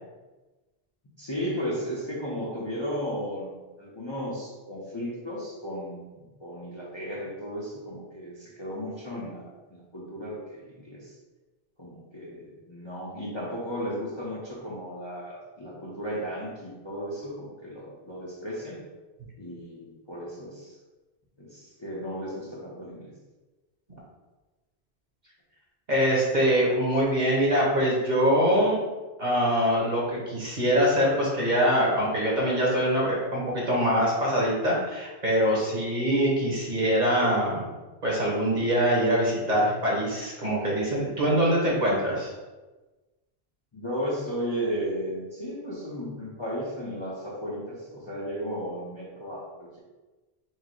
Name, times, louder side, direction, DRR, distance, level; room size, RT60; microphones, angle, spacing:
voice 1, 1.2-11.2 11.8-18.8 19.4-20.8 21.4-23.1 43.7-49.8, equal, 30° left, -6 dB, 0.7 m, -35 dB
voice 2, 25.9-28.8 29.2-37.6 38.0-42.3, equal, 45° right, -5 dB, 1.3 m, -24 dB
4.7 x 2.1 x 4.4 m, 1.2 s
omnidirectional pair, 1.1 m